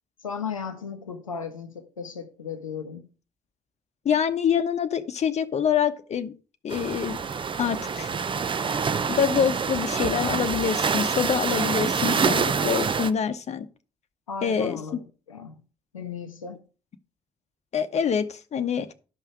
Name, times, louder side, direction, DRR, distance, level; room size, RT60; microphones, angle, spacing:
voice 1, 0.2-3.1 11.9-12.5 14.3-15.6 15.9-16.6, left 6 dB, 85° left, 0.7 m, -36 dB
voice 2, 4.0-6.3 6.6-7.2 7.6-8.1 9.1-13.7 14.4-14.8 17.7-18.9, left 7 dB, 40° left, 0.9 m, -25 dB
sound 1, 6.7-13.1, right 6 dB, 30° right, 0.6 m, -26 dB
11.5 x 5.6 x 4.8 m
figure-of-eight pair, 40°, 17 cm